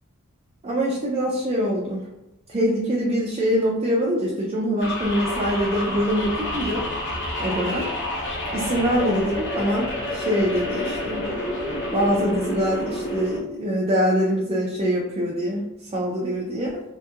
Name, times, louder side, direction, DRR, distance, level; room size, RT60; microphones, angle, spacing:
voice 1, 0.6-2.0 2.5-6.8 7.4-7.9 8.5-11.2 11.9-16.8, equal, 30° right, -4 dB, 0.4 m, -24 dB
sound 1, 4.8-13.4, left 1 dB, 55° left, 0.8 m, -29 dB
2.8 x 2.6 x 2.3 m, 0.96 s
head